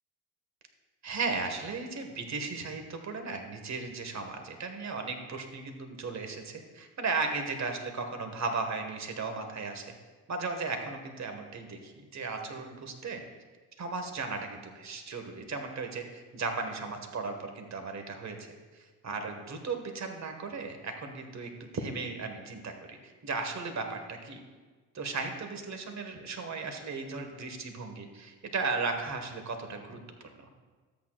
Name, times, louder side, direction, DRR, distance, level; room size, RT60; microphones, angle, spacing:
voice 1, 1.0-9.9 10.3-13.2 13.8-24.4 24.9-30.0 30.4-30.5, right 4 dB, 40° right, 5 dB, 1.8 m, -36 dB
13.0 x 8.6 x 2.5 m, 1.3 s
hypercardioid pair, 60°, 42 cm